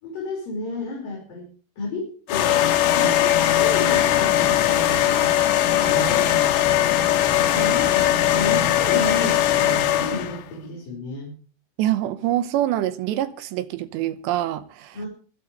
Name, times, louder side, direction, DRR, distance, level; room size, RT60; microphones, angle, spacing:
voice 1, 0.0-1.5 1.8-5.3 5.7-6.8 7.5-11.3 14.9-15.1, left 2 dB, 45° left, 6.6 m, -32 dB
sound 1, 2.3-10.4, left 12 dB, 80° left, 3.8 m, -20 dB
voice 2, 11.8-15.0, right 13 dB, 75° right, 2.8 m, -25 dB
25.0 x 12.5 x 3.3 m
omnidirectional pair, 5.7 m